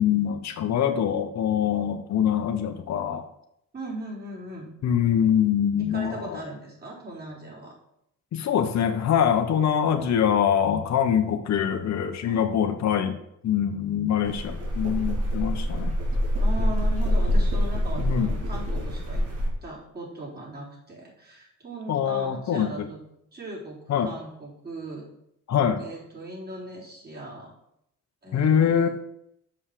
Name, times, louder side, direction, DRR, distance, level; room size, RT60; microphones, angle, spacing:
voice 1, 0.0-3.3 4.8-6.4 8.3-13.2 13.4-15.9 18.0-18.3 21.9-22.7 23.9-24.1 25.5-25.8 28.3-28.9, left 8 dB, 65° left, 6 dB, 1.0 m, -24 dB
voice 2, 3.7-4.7 5.8-7.8 12.3-12.5 16.4-19.3 19.6-23.0 23.3-25.1 25.8-27.5 28.2-28.9, right 2 dB, 30° right, -4 dB, 4.1 m, -38 dB
sound 1, 14.2-19.5, equal, 50° right, 2.7 m, -25 dB
7.1 x 5.5 x 6.7 m, 0.77 s
cardioid pair, 90°, 30 cm